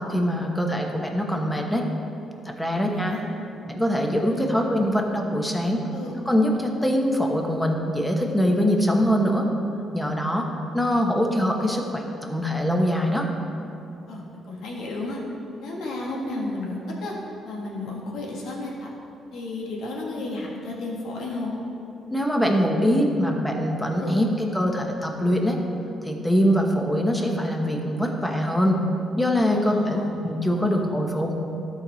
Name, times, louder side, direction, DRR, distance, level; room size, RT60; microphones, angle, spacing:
voice 1, 0.0-1.9 2.4-3.1 3.6-5.8 6.3-9.5 9.9-10.5 10.7-13.3 22.1-25.6 26.0-28.8 29.2-31.4, equal, 5° left, 1 dB, 1.1 m, -23 dB
voice 2, 2.7-3.2 4.3-4.5 5.9-6.1 14.1-15.2 15.6-17.1 17.4-18.9 19.3-21.5 23.9-24.2 29.5-30.1 30.6-30.8, left 2 dB, 80° left, -3 dB, 1.7 m, -33 dB
13.0 x 4.8 x 4.0 m, 2.8 s
cardioid pair, 90°, 0 cm